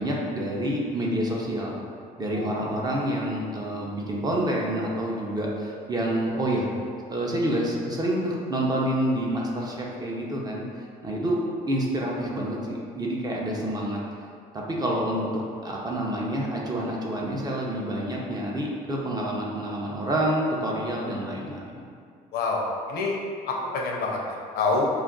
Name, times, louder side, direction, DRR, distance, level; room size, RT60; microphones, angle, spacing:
voice 1, 0.0-1.8 2.2-6.7 7.1-10.6 11.0-11.4 11.7-14.0 14.5-21.9, right 1 dB, 25° right, -3 dB, 0.5 m, -28 dB
voice 2, 2.3-2.9 22.3-23.2 23.5-24.9, left 3 dB, 70° left, -1 dB, 0.5 m, -27 dB
2.4 x 2.3 x 3.6 m, 2.2 s
cardioid pair, 110°, 17 cm